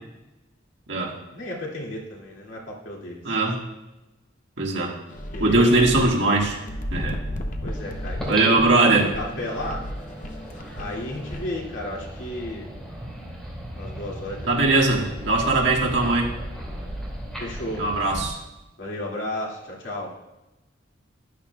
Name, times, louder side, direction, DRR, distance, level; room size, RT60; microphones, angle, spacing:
voice 1, 1.3-3.3 5.3-5.8 7.6-9.8 10.8-12.7 13.7-14.8 15.4-15.5 17.4-17.8 18.8-20.1, left 1 dB, 75° left, -3 dB, 2.3 m, -33 dB
voice 2, 3.2-3.6 4.6-4.9 5.4-6.6 6.9-7.2 8.3-9.1 14.5-16.3 17.8-18.4, right 2 dB, 65° right, -1 dB, 1.7 m, -20 dB
sound 1, 5.1-11.5, left 1 dB, 40° left, 0.8 m, -34 dB
sound 2, 7.7-18.3, equal, 5° left, 2.3 m, -37 dB
12.0 x 10.5 x 2.3 m, 1.0 s
head